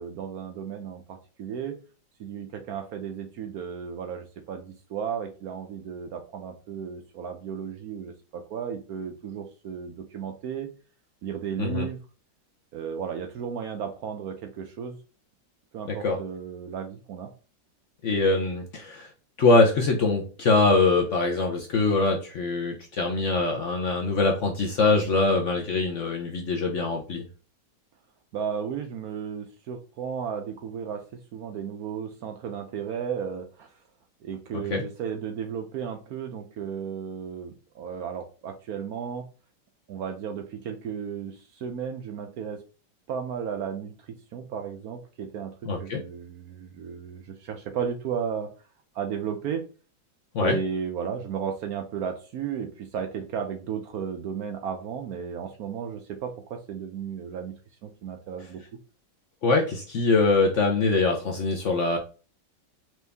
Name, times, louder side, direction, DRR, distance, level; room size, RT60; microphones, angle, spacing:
voice 1, 0.0-1.8 2.2-10.7 11.2-12.0 12.7-15.0 15.7-17.3 28.3-31.0 31.3-33.7 34.2-39.3 39.9-42.6 43.1-45.5 45.8-48.5 48.9-49.6 50.4-57.5 57.8-58.6, right 7 dB, 70° right, 5 dB, 0.9 m, -34 dB
voice 2, 18.0-19.1 19.4-27.2 34.7-34.8 45.7-46.0 50.3-50.6 59.4-62.0, left 3 dB, 60° left, 2 dB, 0.8 m, -23 dB
4.5 x 2.6 x 3.4 m, 0.35 s
omnidirectional pair, 1.9 m